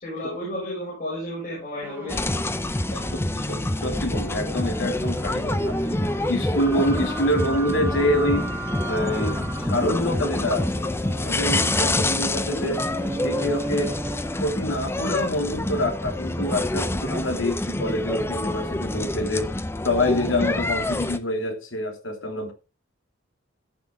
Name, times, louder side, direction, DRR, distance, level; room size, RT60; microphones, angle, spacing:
voice 1, 0.0-2.5 2.9-3.1, left 1 dB, 45° left, 6.0 m, -33 dB
sound 1, 1.8-14.5, right 1 dB, 10° right, 1.8 m, -36 dB
sound 2, 2.1-21.2, left 1 dB, 10° left, 0.5 m, -27 dB
voice 2, 3.1-8.5 8.8-10.9 11.2-12.8 13.2-14.0 14.4-19.5 19.8-22.5, left 1 dB, 75° left, 2.7 m, -26 dB
14.5 x 6.1 x 3.6 m
head